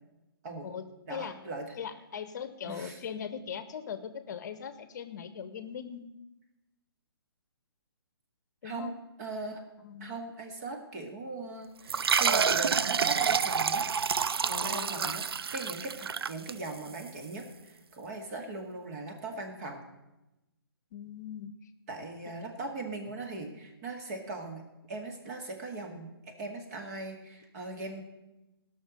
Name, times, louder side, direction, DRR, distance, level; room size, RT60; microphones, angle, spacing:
voice 1, 1.1-1.8 2.6-3.0 8.6-8.9 9.2-9.6 10.0-13.8 14.6-15.3 15.5-19.8 21.9-24.6 24.9-28.0, right 2 dB, 40° right, 3 dB, 2.2 m, -40 dB
voice 2, 1.8-6.1 8.6-9.0 9.8-10.1 14.5-15.2 20.9-21.7, left 7 dB, 45° left, 11 dB, 0.8 m, -40 dB
sound 1, 11.9-17.0, right 6 dB, 70° right, 0.4 m, -28 dB
16.0 x 6.0 x 6.6 m, 0.99 s
figure-of-eight pair, 140°, 13 cm